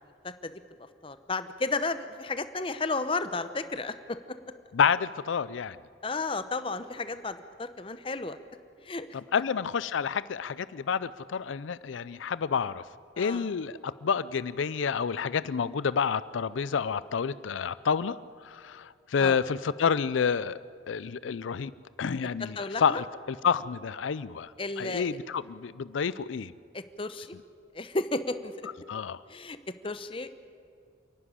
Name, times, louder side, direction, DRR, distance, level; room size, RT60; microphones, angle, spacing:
voice 1, 1.0-4.4 6.0-8.4 8.8-9.1 13.2-13.5 19.2-19.4 22.6-23.0 24.6-25.2 26.7-27.4 27.7-28.5 29.3-30.3, left 3 dB, 30° left, 12 dB, 0.8 m, -33 dB
voice 2, 4.7-5.8 9.1-12.8 13.2-18.2 18.4-20.6 20.9-21.7 22.0-24.5 24.8-26.5 28.9-29.2, left 6 dB, 90° left, 17 dB, 0.5 m, -29 dB
27.5 x 11.5 x 9.9 m, 2.3 s
head